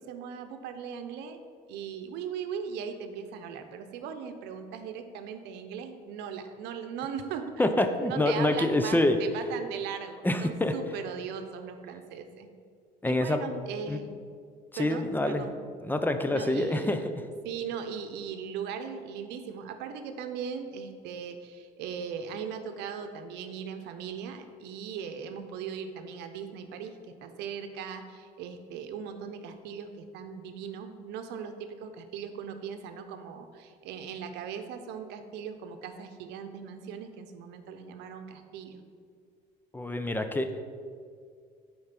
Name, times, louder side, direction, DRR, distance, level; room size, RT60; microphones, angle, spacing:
voice 1, 0.0-1.4 1.7-7.7 8.0-12.5 13.0-14.1 14.8-15.6 16.3-38.8, right 7 dB, 90° right, 7 dB, 0.8 m, -39 dB
voice 2, 7.6-9.2 10.2-10.7 13.0-13.4 13.9-14.0 14.7-15.5 15.8-17.0 39.7-40.5, left 1 dB, 10° left, 7 dB, 0.6 m, -26 dB
8.6 x 4.6 x 5.9 m, 2.1 s
cardioid pair, 110°, 17 cm